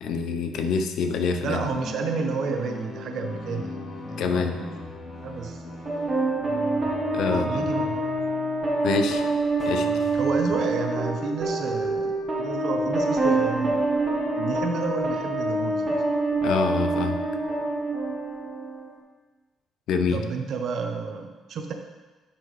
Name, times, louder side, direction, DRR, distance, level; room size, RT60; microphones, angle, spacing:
voice 1, 0.0-1.6 4.2-4.6 7.1-7.5 8.8-9.2 9.6-9.9 16.4-17.2 19.9-20.2, left 5 dB, 70° left, 6 dB, 0.7 m, -25 dB
voice 2, 1.4-4.6 5.2-5.8 7.3-8.0 10.1-13.9 14.4-16.0 20.1-21.7, right 4 dB, 60° right, 4 dB, 1.0 m, -31 dB
sound 1, 1.7-9.3 9.6-10.5, left 2 dB, 50° left, 2.3 m, -37 dB
sound 2, 5.9-18.9, right 2 dB, 30° right, 1.3 m, -26 dB
9.7 x 6.0 x 3.2 m, 1.3 s
cardioid pair, 110°, 0 cm